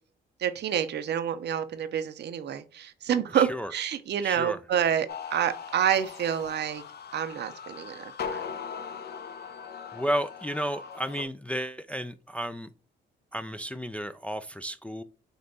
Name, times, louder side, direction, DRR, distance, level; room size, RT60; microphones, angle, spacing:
voice 1, 0.4-6.8 7.1-8.4, right 9 dB, 60° right, 0.6 m, -28 dB
voice 2, 3.3-3.7 4.2-4.6 9.9-12.7 13.3-15.0, equal, 5° left, 0.3 m, -32 dB
sound 1, 5.1-11.2, left 6 dB, 55° left, 0.7 m, -40 dB
5.3 x 2.9 x 2.6 m
cardioid pair, 90°, 20 cm